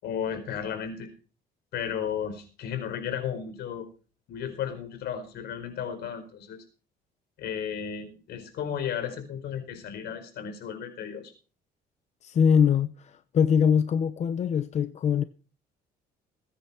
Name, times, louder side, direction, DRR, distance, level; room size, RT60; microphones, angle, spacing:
voice 1, 0.0-1.1 1.7-3.9 4.3-6.6 7.4-11.3, left 8 dB, 75° left, 4.9 m, -34 dB
voice 2, 12.2-15.2, left 7 dB, 40° left, 0.8 m, -23 dB
20.5 x 9.9 x 4.4 m
cardioid pair, 110°, 17 cm